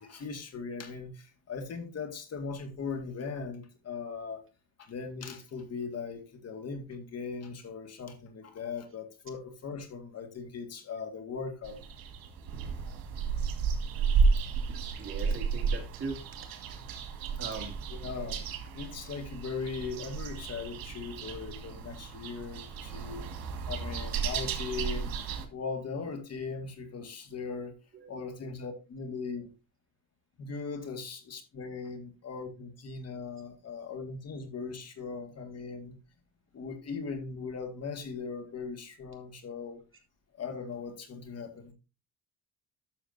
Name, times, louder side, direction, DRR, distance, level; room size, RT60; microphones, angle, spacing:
voice 1, 0.0-4.4 4.8-11.8 17.2-17.3 17.9-18.5 18.7-23.3 23.7-25.1 25.5-27.8 28.1-29.5 30.4-36.0 36.5-39.8 40.4-41.7, left 5 dB, 45° left, 2.0 m, -39 dB
sound 1, 11.6-25.4, right 5 dB, 75° right, 2.1 m, -33 dB
voice 2, 15.0-16.5 17.2-17.8 27.9-28.2, right 4 dB, 35° right, 2.4 m, -40 dB
12.0 x 6.9 x 2.7 m
cardioid pair, 105°, 35 cm